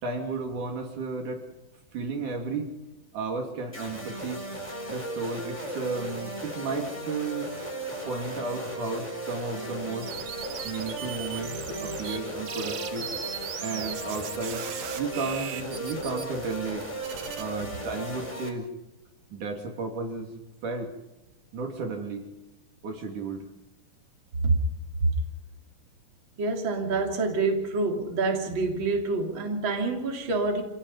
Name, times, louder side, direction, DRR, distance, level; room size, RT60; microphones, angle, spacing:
voice 1, 0.0-1.4 1.9-2.7 3.1-4.5 4.9-7.5 8.1-10.1 10.6-13.1 13.6-14.6 15.0-16.9 17.4-18.7 19.3-20.9 21.5-22.3 22.8-23.5, right 4 dB, 60° right, 3 dB, 4.1 m, -33 dB
sound 1, 3.7-18.5, right 1 dB, 10° left, 3.8 m, -36 dB
sound 2, 10.0-12.2 12.5-17.4, right 9 dB, 80° right, 3.3 m, -38 dB
voice 2, 26.4-30.6, right 3 dB, 35° right, 2 dB, 3.5 m, -26 dB
27.0 x 17.5 x 5.6 m, 0.95 s
omnidirectional pair, 4.1 m